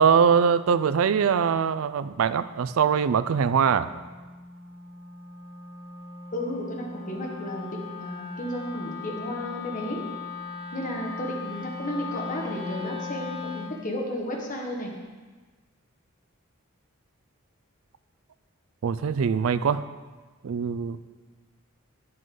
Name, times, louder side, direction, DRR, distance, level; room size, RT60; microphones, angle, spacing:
voice 1, 0.0-3.9 18.8-19.8 20.4-21.0, right 6 dB, 70° right, 14 dB, 0.4 m, -22 dB
Wind instrument woodwind instrument, 2.2-13.8, left 4 dB, 25° right, 1.8 m, -39 dB
voice 2, 6.3-10.0 10.7-14.9, left 1 dB, 35° left, -1 dB, 1.4 m, -33 dB
9.5 x 7.5 x 3.8 m, 1.3 s
head